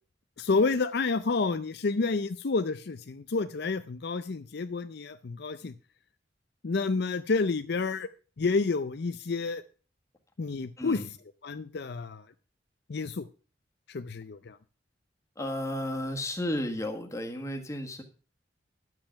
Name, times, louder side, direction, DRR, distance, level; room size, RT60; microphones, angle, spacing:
voice 1, 0.4-5.7 6.6-8.1 8.4-9.6 10.4-11.0 11.4-12.2 12.9-13.3 13.9-14.6, left 4 dB, 60° left, 11 dB, 0.5 m, -29 dB
voice 2, 10.8-11.1 15.3-18.0, left 1 dB, 15° left, 3 dB, 1.6 m, -33 dB
11.0 x 7.6 x 5.8 m, 0.37 s
head